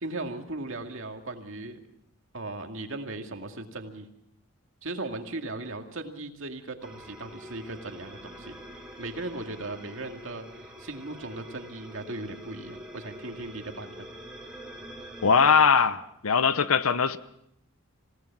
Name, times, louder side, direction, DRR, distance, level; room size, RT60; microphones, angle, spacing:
voice 1, 0.0-1.8 2.3-4.1 4.8-8.6 9.0-14.1, right 2 dB, 70° right, 2.3 m, -37 dB
sound 1, 6.8-15.6, equal, 5° right, 3.5 m, -45 dB
voice 2, 15.2-17.2, left 5 dB, 85° left, 0.9 m, -21 dB
27.0 x 17.5 x 6.0 m
head